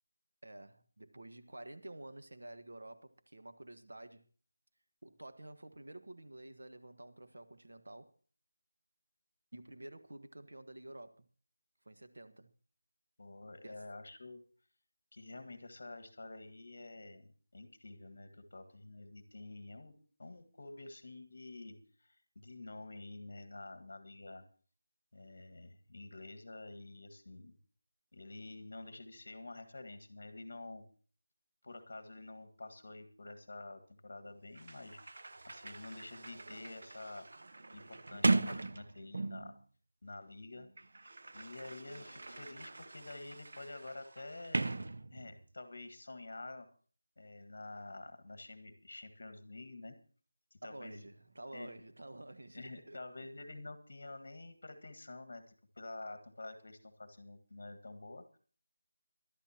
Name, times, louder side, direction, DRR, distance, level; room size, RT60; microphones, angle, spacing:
voice 1, 0.4-4.3 5.0-8.1 9.5-11.2 11.8-12.5 13.6-13.8 50.6-53.0, right 1 dB, 85° right, 1.4 m, -50 dB
voice 2, 13.2-14.4 15.1-19.9 20.2-24.4 25.1-27.6 28.1-30.8 31.6-35.1 35.5-37.4 37.7-39.6 40.0-40.7 41.3-44.7 45.1-46.7 47.2-50.0 50.5-51.0 51.5-51.8 52.5-58.4, left 2 dB, 50° left, 1.7 m, -49 dB
Sliding door, 34.2-34.3 34.6-39.6 40.5-45.5, right 2 dB, 50° right, 0.5 m, -38 dB
22.0 x 12.0 x 2.9 m
figure-of-eight pair, 180°, 0 cm